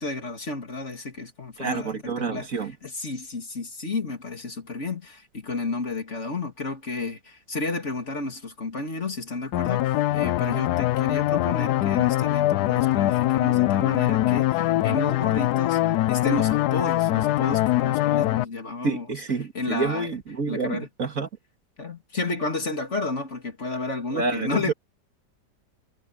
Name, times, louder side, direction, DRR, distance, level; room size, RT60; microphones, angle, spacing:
voice 1, 0.0-2.5 2.8-19.1 19.5-20.1 20.5-20.9 21.8-24.7, left 3 dB, 40° left, 2.8 m, -32 dB
voice 2, 1.6-2.8 18.8-21.3 24.1-24.7, right 4 dB, 50° right, 2.3 m, -28 dB
sound 1, 9.5-18.4, left 15 dB, 75° left, 1.1 m, -22 dB
omnidirectional pair, 1.8 m